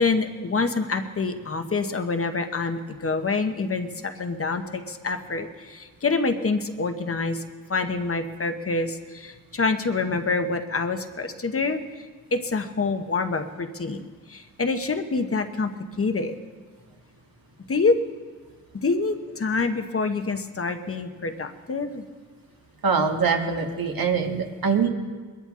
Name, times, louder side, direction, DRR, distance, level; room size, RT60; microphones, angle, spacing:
voice 1, 0.0-7.4 7.7-12.1 12.3-15.7 16.0-16.4 17.7-18.0 18.8-22.0, left 3 dB, 40° left, 7 dB, 0.8 m, -26 dB
voice 2, 22.8-24.9, right 5 dB, 80° right, 3 dB, 1.6 m, -23 dB
22.5 x 12.5 x 3.7 m, 1.5 s
wide cardioid pair, 145°, 35 cm